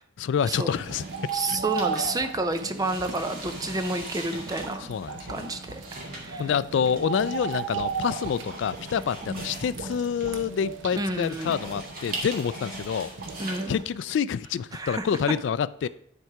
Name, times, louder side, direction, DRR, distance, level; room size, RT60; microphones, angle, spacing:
voice 1, 0.2-1.6 4.8-5.5 6.1-13.1 13.7-15.9, left 7 dB, 75° left, 0.3 m, -28 dB
sound 1, 0.7-15.2, right 2 dB, 50° right, 2.1 m, -42 dB
sound 2, 0.7-13.8, right 5 dB, 80° right, 0.8 m, -36 dB
voice 2, 1.3-4.9 5.3-6.5 9.2-9.4 10.9-11.6 13.4-13.8 14.7-15.1, right 2 dB, 20° right, 0.6 m, -30 dB
10.5 x 4.5 x 4.8 m
head